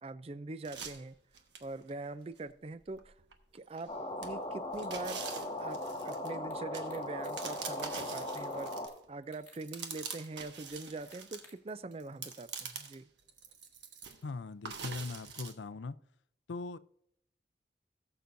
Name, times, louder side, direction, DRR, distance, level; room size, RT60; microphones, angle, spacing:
voice 1, 0.0-1.2 1.6-3.1 3.5-5.2 5.6-5.8 6.0-8.7 9.1-13.0, right 2 dB, 35° right, 14 dB, 0.4 m, -43 dB
sound 1, 0.7-1.9 2.4-2.5 2.9-3.9 4.2-9.1 9.3-11.4 11.9-13.0 13.3-14.2 14.7-15.5, right 6 dB, 85° right, 1.2 m, -45 dB
sound 2, 3.9-8.9, left 1 dB, 30° left, 1.6 m, -39 dB
sound 3, 6.5-6.6 6.9-7.3 7.6-9.0 9.2-9.6 10.2-10.3 10.7-11.7, left 2 dB, 10° left, 2.2 m, -60 dB
voice 2, 14.2-16.0 16.5-16.8, left 3 dB, 90° left, 14 dB, 0.5 m, -40 dB
18.5 x 6.9 x 2.6 m, 0.71 s
head